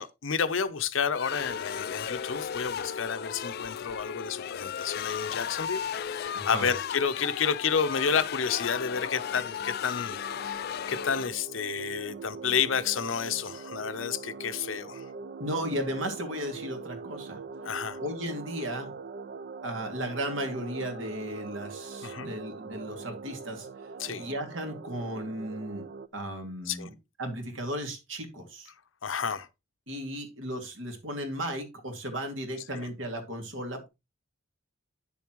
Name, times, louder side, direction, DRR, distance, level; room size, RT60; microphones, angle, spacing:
voice 1, 0.0-15.1 17.6-18.0 22.0-22.3 24.0-24.3 26.7-26.9 29.0-29.5, left 6 dB, 85° left, 0.8 m, -30 dB
sound 1, 1.1-11.3, left 8 dB, 55° left, 0.4 m, -35 dB
voice 2, 6.3-6.7 15.4-17.4 18.0-18.9 19.6-23.7 24.1-25.8 26.1-28.7 29.9-33.9, equal, 80° right, 2.5 m, -35 dB
sound 2, 7.6-26.1, right 4 dB, 50° right, 0.5 m, -43 dB
9.5 x 7.1 x 3.1 m
head